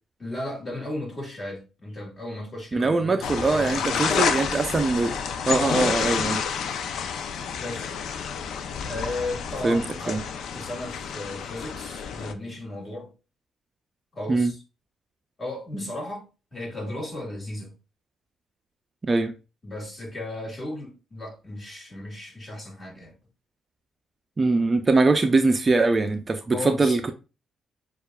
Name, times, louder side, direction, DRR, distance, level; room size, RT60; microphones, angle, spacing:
voice 1, 0.2-4.4 7.5-7.9 8.9-10.3 10.5-13.1 14.1-14.6 15.4-16.3 16.5-17.7 19.6-23.2 26.5-27.0, left 1 dB, 30° left, 1.8 m, -35 dB
voice 2, 2.7-6.4 9.6-9.8 10.1-10.2 14.3-14.5 19.0-19.3 24.4-27.1, right 3 dB, 30° right, 0.4 m, -22 dB
sound 1, 3.2-12.3, left 7 dB, 70° left, 0.4 m, -29 dB
6.6 x 2.4 x 2.3 m
cardioid pair, 90°, 0 cm